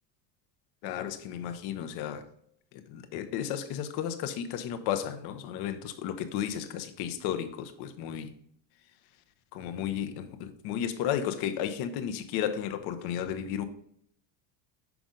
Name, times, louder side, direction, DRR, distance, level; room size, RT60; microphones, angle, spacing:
voice 1, 0.8-2.3 2.7-8.3 9.5-13.6, left 9 dB, 50° left, 9 dB, 0.7 m, -33 dB
5.9 x 5.2 x 3.7 m, 0.68 s
cardioid pair, 150°, 49 cm